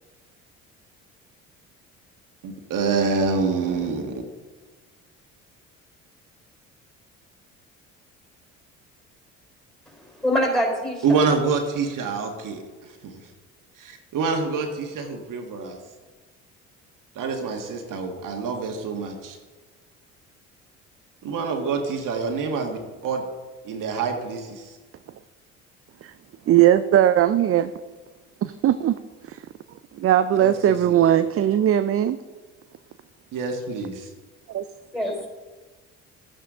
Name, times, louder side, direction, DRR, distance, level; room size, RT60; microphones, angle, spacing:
voice 1, 2.4-4.2 11.0-13.2 13.8-15.8 17.2-19.4 21.2-23.2 23.6-24.8 30.4-30.9 33.3-34.1, right 4 dB, 60° right, 3 dB, 1.7 m, -26 dB
voice 2, 9.9-11.3 34.9-35.3, equal, ahead, 1 dB, 4.0 m, -25 dB
voice 3, 26.5-27.7 28.4-29.0 29.3-29.4 30.0-32.2 34.5-34.6, right 11 dB, 40° right, 12 dB, 0.5 m, -19 dB
13.0 x 9.1 x 3.7 m, 1.3 s
hypercardioid pair, 55°, 36 cm